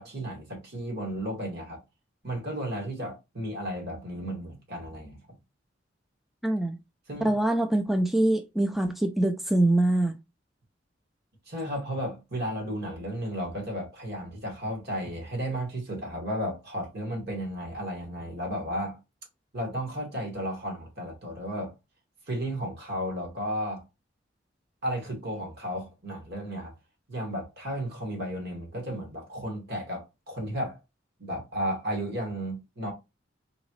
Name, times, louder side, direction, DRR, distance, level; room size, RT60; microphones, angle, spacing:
voice 1, 0.0-1.8 2.2-5.2 7.1-7.3 11.5-19.0 19.5-21.7 22.3-23.8 24.8-26.7 27.1-30.8 31.2-32.9, equal, 60° right, 2.0 m, -33 dB
voice 2, 6.4-6.8 7.2-10.2, right 1 dB, ahead, 0.3 m, -24 dB
4.0 x 3.6 x 3.0 m
head